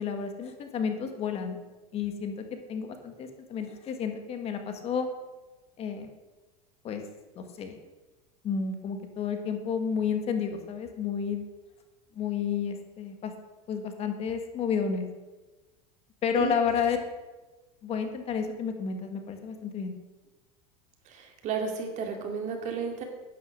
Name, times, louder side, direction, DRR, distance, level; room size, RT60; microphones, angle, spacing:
voice 1, 0.0-1.6 1.9-5.1 5.8-6.1 6.8-7.0 7.3-7.8 8.4-11.4 12.1-13.3 13.7-15.1 16.2-17.0 17.8-19.9, left 6 dB, 35° left, 6 dB, 1.6 m, -31 dB
voice 2, 21.1-23.0, right 5 dB, 40° right, 3 dB, 2.5 m, -32 dB
11.5 x 9.5 x 6.4 m, 1.2 s
supercardioid pair, 140°, 19 cm